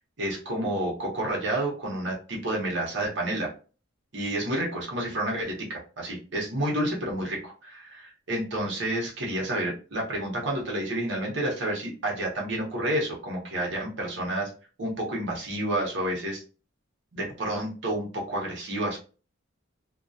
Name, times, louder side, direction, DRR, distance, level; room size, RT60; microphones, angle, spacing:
voice 1, 0.2-3.5 4.1-14.5 14.8-16.4 17.1-19.0, right 1 dB, 65° right, -2 dB, 0.8 m, -30 dB
2.2 x 2.2 x 2.6 m, 0.36 s
head